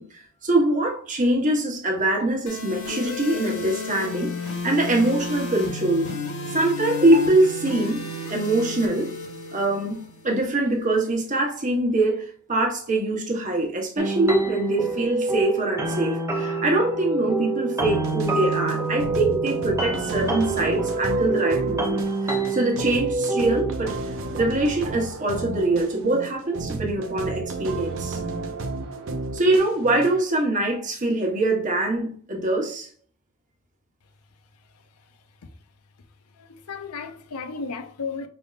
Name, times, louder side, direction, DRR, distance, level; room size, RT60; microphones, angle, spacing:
voice 1, 0.0-6.1 6.5-8.0 8.3-9.1 9.5-10.0 10.2-23.9 24.3-28.2 29.3-32.9, right 1 dB, 35° right, 1.0 m, -23 dB
sound 1, 2.5-10.4, left 3 dB, 70° left, 1.5 m, -32 dB
sound 2, 14.0-23.7, right 3 dB, 15° right, 0.6 m, -26 dB
sound 3, 17.8-30.1, right 3 dB, 60° right, 0.6 m, -32 dB
voice 2, 36.4-38.3, left 4 dB, 85° left, 0.6 m, -34 dB
5.1 x 3.4 x 2.4 m
head